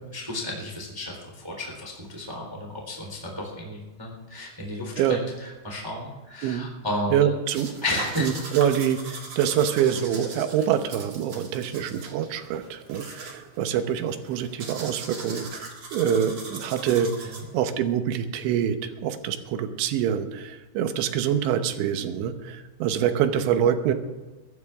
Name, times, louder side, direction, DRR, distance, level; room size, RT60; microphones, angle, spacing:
voice 1, 0.0-7.2 7.8-8.3 17.2-17.4, left 1 dB, 5° right, -1 dB, 2.7 m, -33 dB
voice 2, 7.1-7.7 8.2-23.9, right 9 dB, 80° right, 8 dB, 3.3 m, -25 dB
sound 1, 7.5-17.7, right 3 dB, 40° right, 1.6 m, -40 dB
22.5 x 12.0 x 3.6 m, 1.2 s
omnidirectional pair, 5.4 m